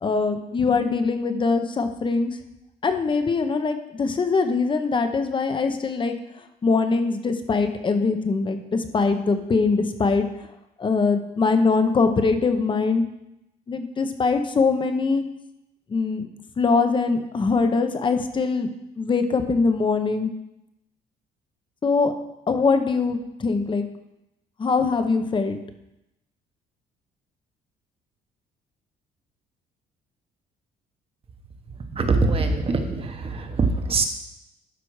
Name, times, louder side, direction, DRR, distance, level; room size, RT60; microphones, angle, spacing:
voice 1, 0.0-2.4 2.8-6.2 6.6-10.3 10.8-13.0 13.7-15.2 15.9-16.3 16.6-18.7 19.0-20.3 21.8-22.1 22.5-23.8 24.6-25.6, left 4 dB, 30° left, 8 dB, 1.0 m, -22 dB
voice 2, 31.9-34.0, right 3 dB, 35° right, 5 dB, 1.2 m, -23 dB
12.0 x 5.0 x 4.8 m, 0.88 s
cardioid pair, 110°, 17 cm